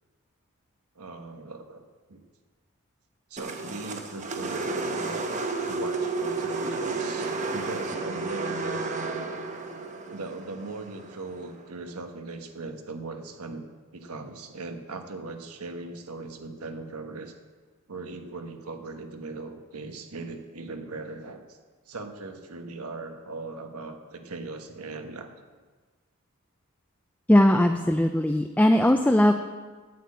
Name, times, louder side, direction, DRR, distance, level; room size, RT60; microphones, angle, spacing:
voice 1, 0.9-2.2 3.3-5.2 5.6-8.8 9.8-17.3 17.9-21.6 21.9-25.3, right 3 dB, 85° right, 6 dB, 1.3 m, -39 dB
sound 1, 3.4-11.6, right 3 dB, 35° right, 1.0 m, -32 dB
voice 2, 27.3-29.3, left 1 dB, 5° left, 5 dB, 0.4 m, -19 dB
9.3 x 8.6 x 8.5 m, 1.4 s
head